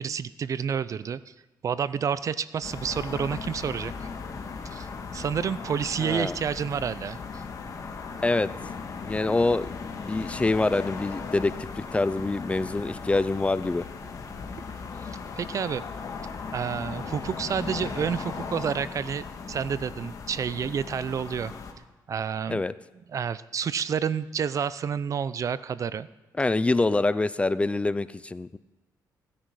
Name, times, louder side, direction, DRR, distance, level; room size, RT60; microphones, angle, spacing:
voice 1, 0.0-1.3 1.6-3.9 4.7-4.9 5.1-7.4 15.0-15.8 16.5-21.5 22.1-22.6 23.1-26.1, right 7 dB, 50° right, 17 dB, 0.5 m, -29 dB
Light City Sounds at Night, 2.6-21.7, left 5 dB, 50° left, 1.6 m, -37 dB
voice 2, 6.0-6.4 8.2-8.5 9.0-9.7 10.0-13.8 22.5-22.7 26.4-28.6, left 2 dB, 15° left, 16 dB, 0.4 m, -25 dB
16.5 x 10.0 x 4.8 m, 1.1 s
cardioid pair, 95°, 7 cm